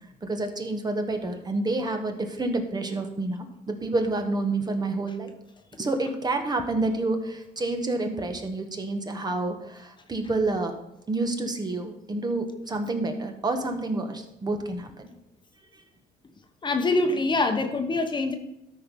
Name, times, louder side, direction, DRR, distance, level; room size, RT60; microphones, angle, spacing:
voice 1, 0.2-5.3 5.8-10.7 11.1-15.1 15.7-15.8, right 2 dB, 25° right, 5 dB, 1.3 m, -28 dB
voice 2, 16.6-18.3, left 2 dB, 25° left, 6 dB, 1.1 m, -24 dB
13.0 x 4.7 x 5.3 m, 0.86 s
cardioid pair, 110°, 17 cm